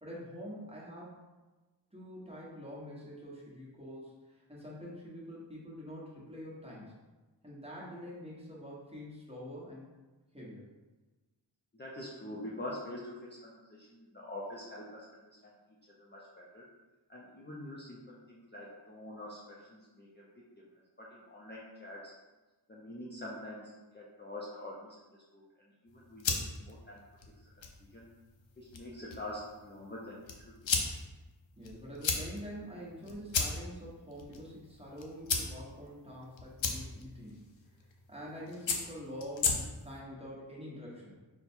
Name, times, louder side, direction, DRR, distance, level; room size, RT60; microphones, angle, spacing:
voice 1, 0.0-1.2 1.9-7.0 7.4-9.9 10.3-10.7 31.6-37.5 38.1-41.1, equal, 15° right, -6 dB, 1.2 m, -46 dB
voice 2, 11.7-15.5 16.0-16.6 17.1-20.6 21.0-22.1 22.7-25.0 25.3-25.4 25.8-27.1 27.4-27.5 27.9-28.1 28.6-30.5, left 1 dB, 25° left, -5 dB, 0.5 m, -45 dB
sound 1, 25.9-40.0, left 5 dB, 75° left, 0.7 m, -38 dB
4.1 x 2.2 x 4.4 m, 1.2 s
wide cardioid pair, 90°, 46 cm